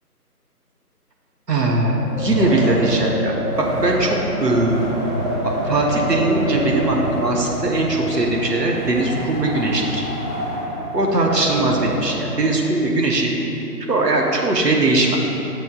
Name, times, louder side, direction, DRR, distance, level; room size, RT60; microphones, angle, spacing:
voice 1, 1.5-4.9 5.4-10.0 10.9-13.4 13.9-15.2, right 2 dB, 85° right, 0 dB, 1.2 m, -20 dB
Wind, 2.0-12.3, equal, ahead, 1.2 m, -27 dB
7.9 x 6.9 x 2.4 m, 3.0 s
figure-of-eight pair, 165°, 48 cm